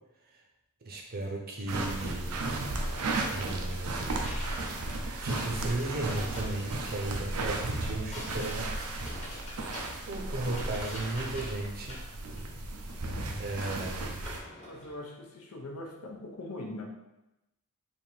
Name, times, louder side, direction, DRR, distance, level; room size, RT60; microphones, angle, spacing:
voice 1, 0.8-2.7 3.3-4.3 4.9-8.7 9.1-9.8 10.1-12.0 13.3-14.2, right 2 dB, 45° right, 1 dB, 0.7 m, -36 dB
sound 1, 1.7-14.4, right 2 dB, 85° right, 0.6 m, -35 dB
sound 2, 3.0-15.0, left 1 dB, 30° left, 1.0 m, -46 dB
voice 2, 14.6-16.8, left 1 dB, 85° left, 1 dB, 0.7 m, -41 dB
3.5 x 2.7 x 4.2 m, 0.95 s
head